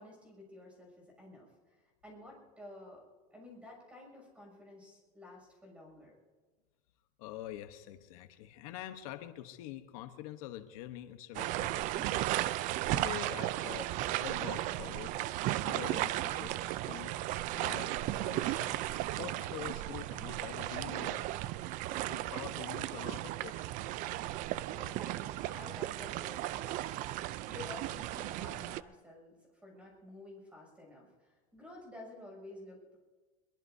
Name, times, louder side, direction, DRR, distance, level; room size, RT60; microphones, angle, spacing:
voice 1, 0.0-1.8 2.0-3.0 3.3-6.1 24.7-33.0, left 2 dB, 5° right, 0 dB, 6.8 m, -52 dB
voice 2, 7.2-15.2 15.6-18.8 19.2-21.4 22.0-23.8, left 13 dB, 80° left, 8 dB, 1.1 m, -46 dB
sound 1, 11.3-28.8, right 15 dB, 45° right, 0.4 m, -35 dB
22.5 x 22.0 x 2.7 m, 1.3 s
cardioid pair, 155°, 18 cm